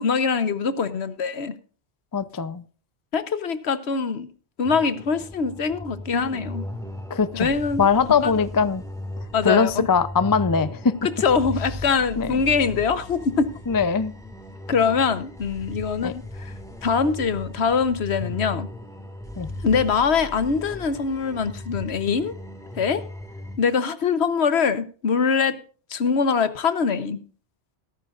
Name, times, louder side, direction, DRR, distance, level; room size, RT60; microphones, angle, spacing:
voice 1, 0.0-1.5 3.1-4.3 4.6-6.7 7.3-7.9 8.2-8.5 9.3-9.9 11.2-13.5 14.7-16.5 16.8-18.7 19.6-22.4 22.8-23.0 23.6-25.6 25.9-27.2, left 5 dB, 70° left, 1.2 m, -23 dB
voice 2, 2.1-2.6 7.1-7.5 7.8-8.8 9.4-10.9 12.2-12.4 13.7-14.1 16.0-16.1 19.4-19.5, left 5 dB, 25° left, 0.5 m, -21 dB
sound 1, 4.6-23.6, left 1 dB, 5° left, 2.0 m, -37 dB
15.5 x 13.5 x 2.5 m
omnidirectional pair, 1.2 m